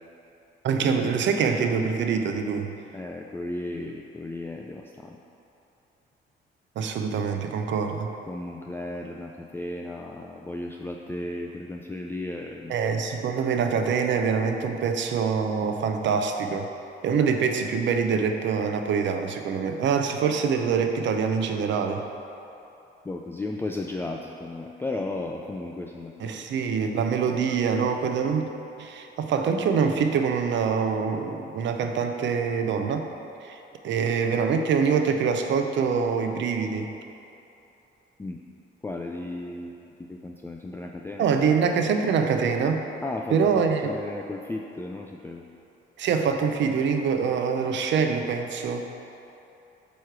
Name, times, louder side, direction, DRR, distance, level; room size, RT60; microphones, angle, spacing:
voice 1, 0.6-2.7 6.8-8.1 12.7-16.7 17.0-22.0 26.2-28.5 28.8-33.1 33.4-33.6 33.8-36.9 41.2-42.9 43.3-43.9 46.0-48.9, right 6 dB, 70° right, 6 dB, 0.6 m, -25 dB
voice 2, 2.9-5.2 8.2-12.8 23.0-26.4 38.2-38.4 38.8-39.7 40.1-41.3 43.0-45.4, left 2 dB, 10° left, 1 dB, 0.3 m, -35 dB
8.0 x 3.2 x 5.9 m, 2.9 s
cardioid pair, 90°, 20 cm